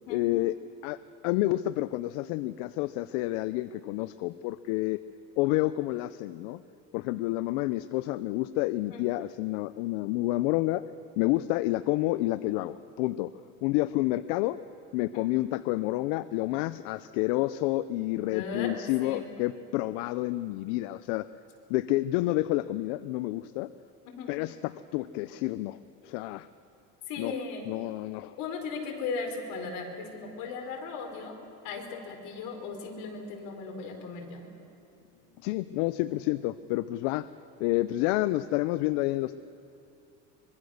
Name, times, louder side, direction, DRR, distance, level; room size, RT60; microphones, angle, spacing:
voice 1, 0.1-0.5 0.8-1.0 1.2-5.0 5.4-6.6 6.9-10.8 11.2-13.3 13.6-14.6 14.9-21.3 21.7-23.7 24.3-25.8 26.0-26.5 27.2-27.3 27.7-28.4 35.4-37.3 37.6-39.4, left 17 dB, 80° left, 15 dB, 0.7 m, -29 dB
voice 2, 18.3-19.3 24.0-24.3 27.1-27.8 28.4-31.4 31.6-34.5, left 4 dB, 60° left, 2 dB, 4.8 m, -37 dB
24.5 x 23.0 x 6.5 m, 2.6 s
supercardioid pair, 120°, 36 cm